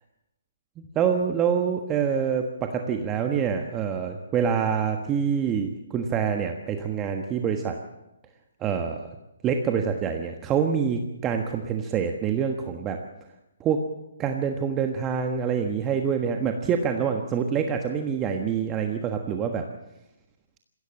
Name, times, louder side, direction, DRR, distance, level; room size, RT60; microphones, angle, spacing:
voice 1, 0.8-7.7 8.6-9.1 9.4-13.0 13.6-13.8 14.2-19.6, right 7 dB, 20° right, 4 dB, 1.4 m, -26 dB
20.0 x 16.0 x 8.9 m, 0.93 s
hypercardioid pair, 145°, 0 cm